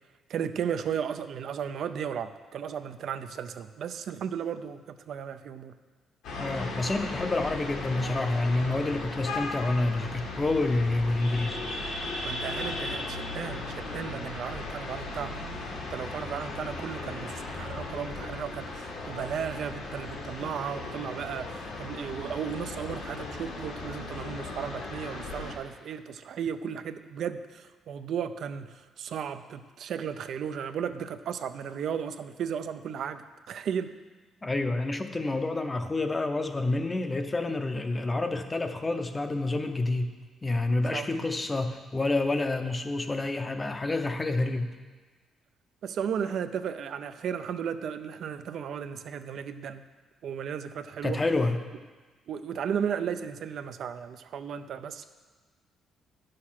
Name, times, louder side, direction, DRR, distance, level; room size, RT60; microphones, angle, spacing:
voice 1, 0.3-5.7 12.2-15.4 15.9-33.9 40.9-41.3 45.8-49.8 50.2-51.2 52.3-55.0, right 8 dB, 60° right, 10 dB, 0.4 m, -35 dB
sound 1, 6.2-25.6, left 2 dB, 85° left, 1.8 m, -37 dB
voice 2, 6.4-11.6 34.4-40.1 40.4-44.7 51.0-51.6, left 2 dB, 15° left, 8 dB, 0.6 m, -28 dB
9.6 x 6.5 x 5.8 m, 1.4 s
cardioid pair, 150°, 0 cm